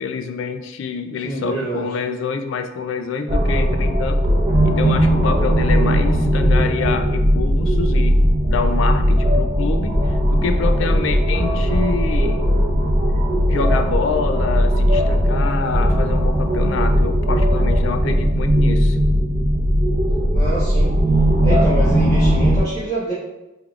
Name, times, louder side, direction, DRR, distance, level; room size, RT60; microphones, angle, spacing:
voice 1, 0.0-4.2 4.6-8.2 8.5-12.4 13.5-19.0, left 5 dB, 75° left, 8 dB, 0.3 m, -26 dB
voice 2, 1.2-1.8 20.3-20.9 21.4-23.1, right 2 dB, 20° left, -10 dB, 0.7 m, -26 dB
sound 1, 3.3-22.6, equal, 30° right, 0.6 m, -17 dB
3.5 x 3.5 x 2.3 m, 1.0 s
head